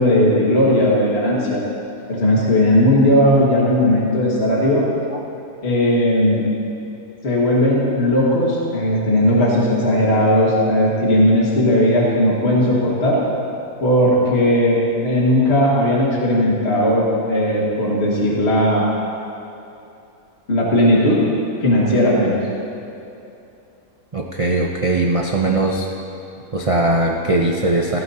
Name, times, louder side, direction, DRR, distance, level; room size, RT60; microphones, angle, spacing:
voice 1, 0.0-1.6 2.1-4.9 5.6-6.5 7.2-13.2 13.8-18.9 20.5-21.2 21.6-22.4, left 1 dB, 40° left, -5 dB, 2.0 m, -17 dB
voice 2, 24.1-25.9 26.5-28.0, right 2 dB, 60° right, 0 dB, 0.3 m, -19 dB
15.0 x 14.5 x 2.8 m, 2.8 s
omnidirectional pair, 1.7 m